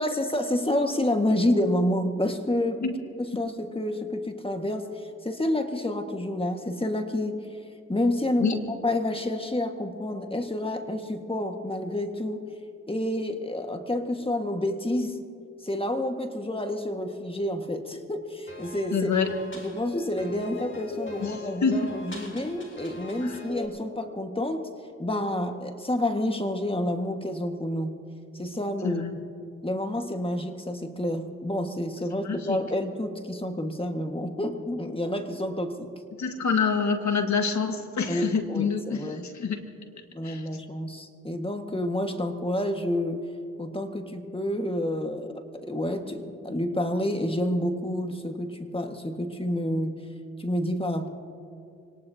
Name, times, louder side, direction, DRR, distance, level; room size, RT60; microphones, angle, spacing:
voice 1, 0.0-2.8 3.2-7.4 7.9-12.4 12.9-15.2 15.6-24.7 25.0-27.9 28.3-29.0 29.6-35.9 38.1-39.3 40.1-43.3 43.6-50.0 50.4-51.1, left 1 dB, 15° left, 5 dB, 1.8 m, -29 dB
sound 1, 18.5-23.7, left 2 dB, 40° left, 3.6 m, -41 dB
voice 2, 18.9-19.3 21.2-21.9 23.2-23.3 28.8-29.1 32.2-32.6 36.2-39.6 40.2-40.4, left 5 dB, 65° left, 5 dB, 1.8 m, -27 dB
25.0 x 18.5 x 2.9 m, 2.5 s
supercardioid pair, 40°, 31 cm